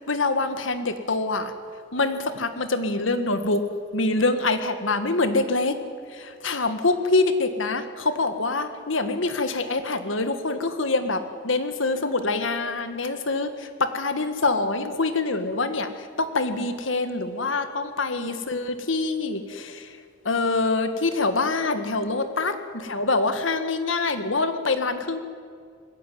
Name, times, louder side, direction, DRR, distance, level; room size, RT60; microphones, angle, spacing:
voice 1, 0.1-1.5 1.9-3.6 3.9-5.8 6.1-15.9 16.2-19.9 20.3-22.5 22.8-25.2, left 3 dB, 85° left, 9 dB, 1.9 m, -25 dB
21.0 x 16.5 x 9.4 m, 2.1 s
head